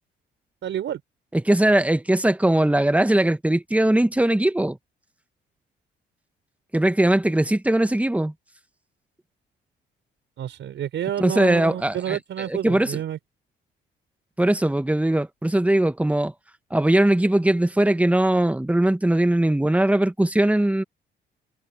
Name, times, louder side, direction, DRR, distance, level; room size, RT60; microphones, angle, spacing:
voice 1, 0.6-1.0 10.4-13.2, right 10 dB, 70° right, 5.0 m, -29 dB
voice 2, 1.3-4.8 6.7-8.3 11.2-12.2 12.5-13.0 14.4-16.3 16.7-20.8, right 1 dB, 5° right, 1.4 m, -20 dB
cardioid pair, 90°, 20 cm